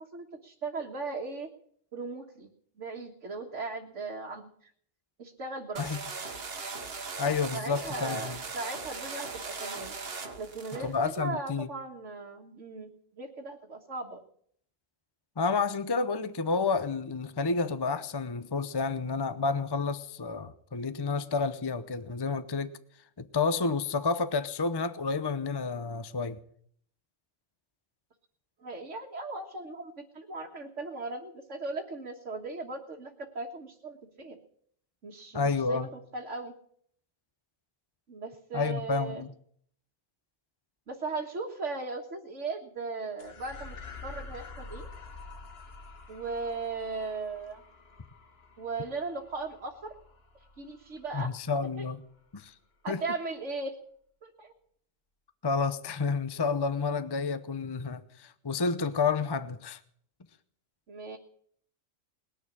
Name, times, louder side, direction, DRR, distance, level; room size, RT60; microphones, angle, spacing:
voice 1, 0.1-1.5 1.9-2.5 2.8-4.7 5.2-5.8 7.5-10.0 10.4-12.9 13.2-14.2 28.6-34.4 35.0-36.5 38.1-39.2 40.9-43.8 44.0-44.9 46.1-47.6 48.6-49.9 50.6-51.3 51.8-51.9 52.8-53.7 54.2-54.5 60.9-61.2, right 3 dB, 75° right, 1.9 m, -37 dB
sound 1, 5.8-11.2, right 4 dB, 55° right, 1.5 m, -39 dB
voice 2, 7.2-8.4 10.8-11.7 15.4-22.8 23.2-26.4 35.3-35.9 38.5-39.3 51.1-52.0 52.3-52.5 52.9-53.0 55.4-59.8, left 4 dB, 25° left, 0.7 m, -30 dB
sound 2, 43.2-51.8, left 3 dB, 55° left, 1.5 m, -48 dB
20.0 x 6.9 x 9.9 m
omnidirectional pair, 1.3 m